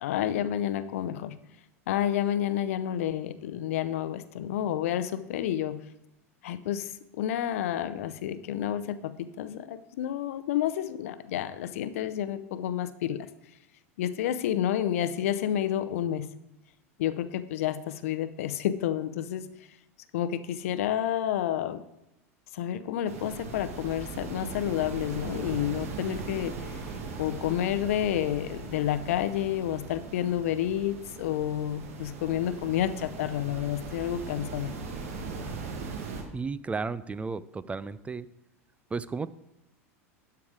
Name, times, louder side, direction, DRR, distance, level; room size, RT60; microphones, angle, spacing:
voice 1, 0.0-1.3 1.9-5.8 6.4-13.3 14.0-16.3 17.0-19.5 20.1-21.8 22.5-26.6 27.2-34.7, left 11 dB, 70° left, 12 dB, 0.6 m, -30 dB
sound 1, 23.1-36.2, right 4 dB, 80° right, 1.6 m, -39 dB
voice 2, 36.3-38.3 38.9-39.3, right 4 dB, 15° right, 17 dB, 0.3 m, -33 dB
12.5 x 4.8 x 4.9 m, 0.90 s
hypercardioid pair, 90°, 8 cm